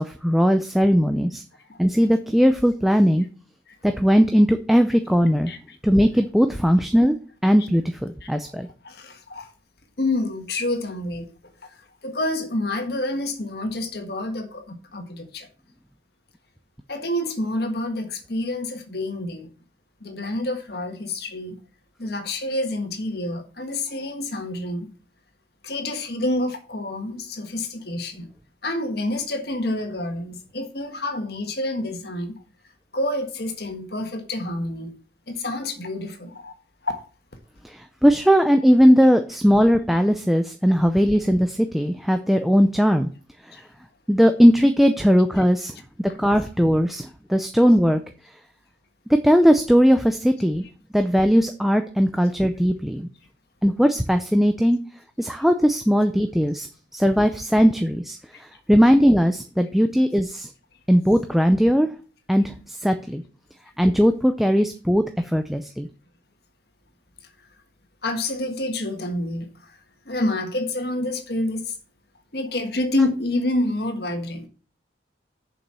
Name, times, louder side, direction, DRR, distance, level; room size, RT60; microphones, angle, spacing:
voice 1, 0.0-1.4 1.8-3.3 3.8-5.5 5.8-7.2 7.4-8.7 37.6-43.1 44.1-45.7 46.2-48.0 49.1-50.7 50.9-53.1 53.6-54.8 55.2-56.7 56.9-58.2 58.7-60.5 60.9-61.9 62.3-63.2 63.8-65.9, equal, ahead, 0.5 m, -18 dB
voice 2, 8.8-9.5 10.0-11.3 11.6-11.7 12.0-15.5 16.9-19.5 20.0-21.6 22.0-24.9 25.6-28.3 28.6-32.4 32.9-35.0 35.3-36.5 36.8-37.0 45.3-45.4 46.1-46.2 47.7-47.8 68.0-69.8 70.0-71.7 72.3-74.5, left 1 dB, 60° left, 1.6 m, -28 dB
7.1 x 5.5 x 7.4 m
head